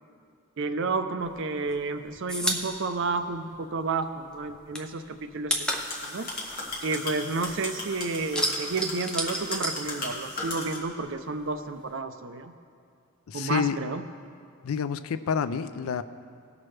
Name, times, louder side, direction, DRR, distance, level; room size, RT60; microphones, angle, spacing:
voice 1, 0.6-6.3 6.8-12.5 13.3-14.0, right 3 dB, 55° right, 8 dB, 0.5 m, -31 dB
sound 1, 1.2-4.0 4.3-7.6 7.9-10.5 10.8-11.9, equal, 5° left, 0.5 m, -32 dB
sound 2, 5.6-10.8, left 2 dB, 40° left, 1.5 m, -37 dB
voice 2, 13.3-13.8 14.6-16.0, left 7 dB, 70° left, 13 dB, 0.4 m, -28 dB
17.5 x 6.0 x 3.2 m, 2.3 s
head